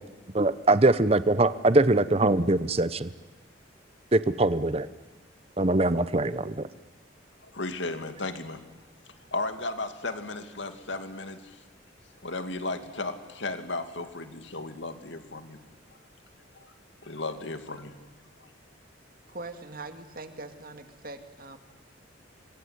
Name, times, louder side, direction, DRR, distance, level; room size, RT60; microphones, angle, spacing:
voice 1, 0.3-3.1 4.1-4.9 5.6-6.7, right 2 dB, 30° right, 14 dB, 0.8 m, -22 dB
voice 2, 7.4-8.6 9.3-11.6 12.2-15.6 16.5-16.7 17.0-18.1, left 2 dB, 70° left, 8 dB, 2.4 m, -35 dB
voice 3, 19.3-21.6, right 2 dB, 45° right, 7 dB, 2.3 m, -42 dB
26.0 x 23.0 x 9.5 m, 1.3 s
head